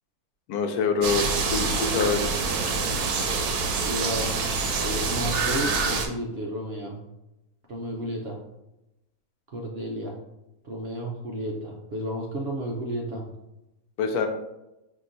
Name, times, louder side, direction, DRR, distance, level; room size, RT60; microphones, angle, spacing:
voice 1, 0.5-2.3 14.0-14.3, left 5 dB, 80° left, 5 dB, 1.1 m, -25 dB
sound 1, 1.0-6.1, right 4 dB, 85° right, 1.1 m, -26 dB
voice 2, 3.8-4.5 4.8-7.0 7.7-8.4 9.5-10.2 10.6-13.3, right 1 dB, 60° right, -1 dB, 0.7 m, -32 dB
5.5 x 2.9 x 2.5 m, 0.91 s
omnidirectional pair, 1.6 m